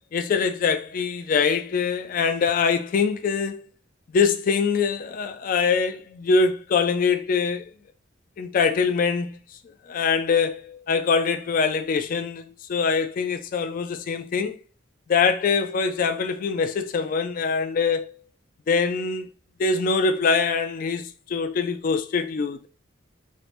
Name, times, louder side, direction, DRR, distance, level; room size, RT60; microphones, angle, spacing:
voice 1, 0.1-3.7 4.1-7.7 8.4-9.4 9.9-14.6 15.1-18.1 18.7-19.3 19.6-22.7, left 5 dB, 45° left, 0.3 m, -23 dB
3.2 x 2.5 x 2.9 m
head